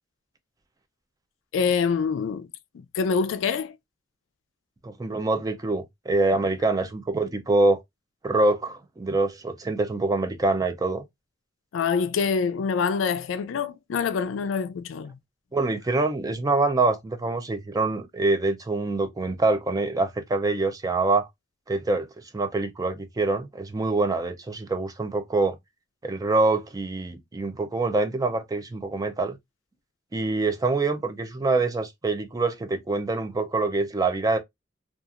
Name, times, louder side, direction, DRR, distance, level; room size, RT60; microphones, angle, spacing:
voice 1, 1.5-2.5 2.7-3.7 11.7-15.2, left 5 dB, 80° left, 0.4 m, -25 dB
voice 2, 4.8-7.8 8.2-11.0 15.5-21.3 21.7-22.1 22.3-25.6 26.0-29.4 30.1-34.4, right 3 dB, 20° right, 0.4 m, -25 dB
2.8 x 2.4 x 2.4 m
head